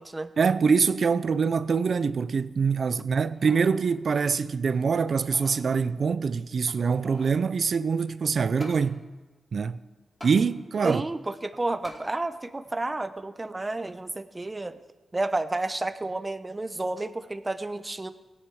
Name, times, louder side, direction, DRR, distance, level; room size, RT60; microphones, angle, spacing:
voice 1, 0.4-9.0 9.5-9.8 10.2-11.0, right 5 dB, 65° right, 0.5 m, -24 dB
sound 1, 3.1-3.8 4.2-4.3 5.0-5.6 6.6-7.4 8.6-8.8 10.2-10.4 11.8-12.0 12.6-12.7, left 1 dB, 20° left, 4.1 m, -44 dB
voice 2, 10.8-14.8 15.1-18.1, right 2 dB, 25° right, 0.9 m, -31 dB
17.0 x 10.0 x 4.8 m
cardioid pair, 60°, 0 cm